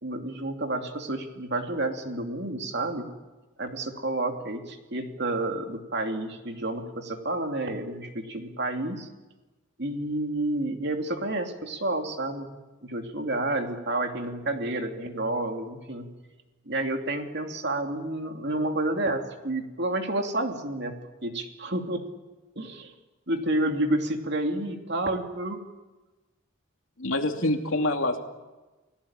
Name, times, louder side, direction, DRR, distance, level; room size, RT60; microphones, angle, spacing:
voice 1, 0.0-3.1 3.6-9.1 9.8-12.5 12.8-16.1 16.7-22.0 22.6-22.9 23.3-25.6 27.4-27.8, right 2 dB, 55° right, 4 dB, 2.9 m, -30 dB
voice 2, 27.0-28.2, left 2 dB, 80° left, 4 dB, 2.7 m, -26 dB
29.5 x 17.5 x 8.9 m, 1.2 s
head